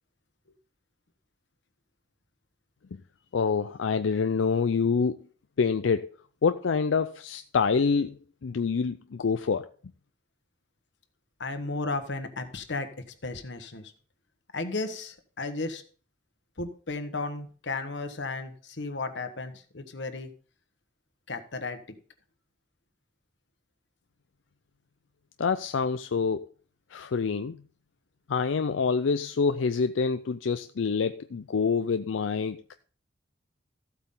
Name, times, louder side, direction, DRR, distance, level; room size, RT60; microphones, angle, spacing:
voice 1, 3.3-5.2 5.6-6.2 6.4-9.7 25.4-26.5 26.9-27.6 28.3-32.7, left 5 dB, 90° left, 0.5 m, -26 dB
voice 2, 11.4-12.9 13.2-13.9 14.5-15.8 16.6-20.3 21.3-21.8, left 3 dB, 70° left, 1.3 m, -34 dB
14.0 x 8.2 x 3.8 m
head